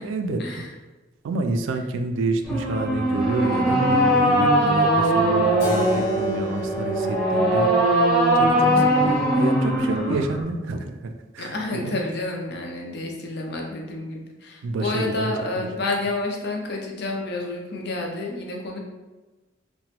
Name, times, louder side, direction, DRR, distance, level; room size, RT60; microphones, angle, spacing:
voice 1, 0.0-0.4 1.2-7.7 8.3-12.1 14.6-15.7, right 3 dB, 80° right, 6 dB, 0.3 m, -29 dB
sound 1, 2.4-10.4, right 1 dB, ahead, 0.6 m, -20 dB
Keyboard (musical), 5.6-10.5, equal, 85° left, 0.7 m, -38 dB
voice 2, 8.4-8.9 11.4-18.8, left 2 dB, 55° left, 0 dB, 0.5 m, -29 dB
2.9 x 2.2 x 2.8 m, 1.2 s
head